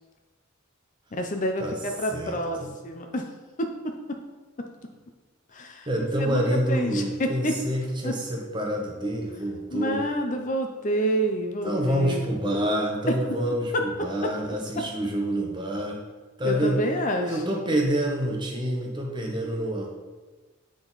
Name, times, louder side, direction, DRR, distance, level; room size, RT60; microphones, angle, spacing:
voice 1, 1.1-3.2 3.6-3.9 5.5-5.9 6.2-6.4 6.7-7.5 8.0-8.1 9.7-12.3 16.4-17.6, equal, 35° left, 4 dB, 0.5 m, -28 dB
voice 2, 2.1-2.7 5.9-10.0 11.6-16.0 16.4-16.8 17.2-19.9, equal, 20° right, 0 dB, 1.0 m, -27 dB
9.4 x 3.8 x 4.0 m, 1.3 s
head